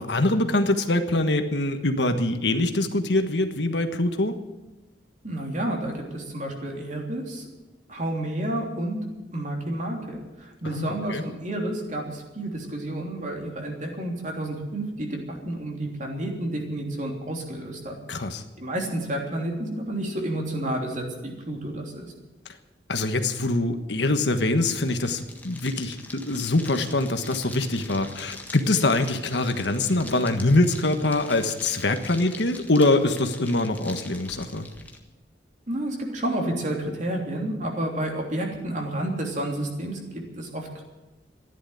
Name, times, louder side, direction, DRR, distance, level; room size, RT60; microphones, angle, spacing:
voice 1, 0.0-4.3 10.7-11.2 18.1-18.4 22.9-34.7, left 2 dB, 70° left, 7 dB, 1.4 m, -24 dB
voice 2, 5.2-7.4 7.9-9.0 9.3-17.9 18.6-22.0 35.7-40.0 40.4-40.8, right 1 dB, 45° right, 1 dB, 3.2 m, -30 dB
sound 1, 24.7-35.0, left 2 dB, 10° left, 1.5 m, -44 dB
14.0 x 11.0 x 9.2 m, 1.1 s
head